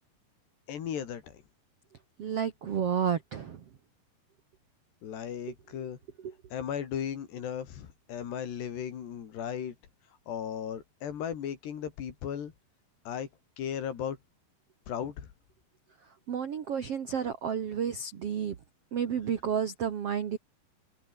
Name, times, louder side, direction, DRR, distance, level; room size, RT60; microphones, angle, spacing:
voice 1, 0.7-1.4 5.0-6.0 6.5-9.8 10.3-12.5 13.1-13.3 13.6-14.2 14.9-15.3, left 8 dB, 65° left, 4.8 m, -36 dB
voice 2, 2.2-3.6 16.3-18.5 18.9-20.4, right 7 dB, 85° right, 1.3 m, -31 dB
omnidirectional pair, 5.4 m